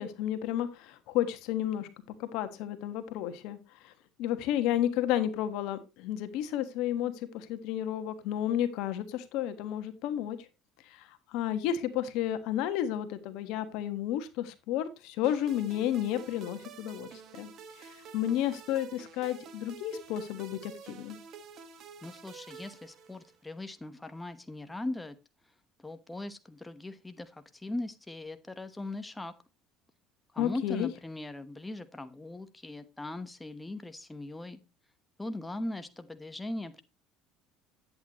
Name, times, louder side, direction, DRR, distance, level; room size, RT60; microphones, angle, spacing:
voice 1, 0.0-1.9 2.2-3.9 4.2-10.5 10.8-17.5 17.8-21.2 30.4-30.9, left 11 dB, 75° left, 10 dB, 1.4 m, -32 dB
sound 1, 15.2-23.5, right 6 dB, 50° right, 1.6 m, -49 dB
voice 2, 22.0-25.2 25.8-29.3 30.3-34.6 35.2-36.8, left 2 dB, 10° left, 10 dB, 1.0 m, -39 dB
10.0 x 8.7 x 3.0 m, 0.27 s
supercardioid pair, 95°, 0 cm